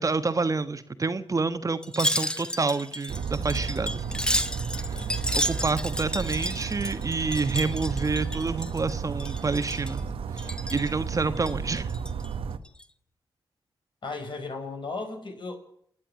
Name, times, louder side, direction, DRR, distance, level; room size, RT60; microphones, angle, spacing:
voice 1, 0.0-4.2 5.3-10.0 10.3-11.9, right 4 dB, 40° right, 11 dB, 1.2 m, -28 dB
Wind chime, 1.8-8.9 9.2-10.0 10.4-10.9 11.4-12.3 12.7-12.8, equal, 10° left, 1.2 m, -32 dB
Bird vocalization bird call bird song, 3.1-12.6, right 6 dB, 85° right, 1.2 m, -33 dB
voice 2, 4.7-5.2 14.0-15.6, left 3 dB, 60° left, 4 dB, 5.5 m, -36 dB
28.5 x 10.0 x 9.2 m, 0.69 s
cardioid pair, 80°, 9 cm